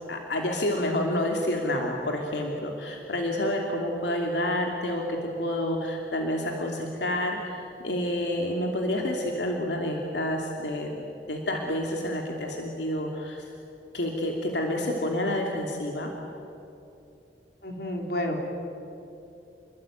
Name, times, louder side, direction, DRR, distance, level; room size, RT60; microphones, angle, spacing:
voice 1, 0.1-13.5 13.9-16.1, left 1 dB, 85° left, 1 dB, 2.9 m, -29 dB
voice 2, 17.6-18.4, left 1 dB, 65° left, 2 dB, 4.1 m, -30 dB
30.0 x 21.5 x 9.2 m, 2.7 s
head